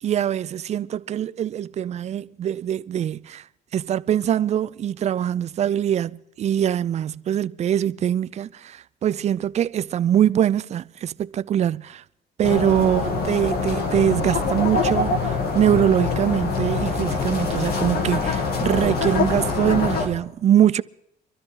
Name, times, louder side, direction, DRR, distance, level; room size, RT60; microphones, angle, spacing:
voice 1, 0.0-3.4 3.7-12.0 12.4-20.8, right 10 dB, 40° right, 0.5 m, -23 dB
sound 1, 12.4-20.1, left 4 dB, 65° left, 2.7 m, -24 dB
23.0 x 13.5 x 3.8 m
cardioid pair, 110°, 17 cm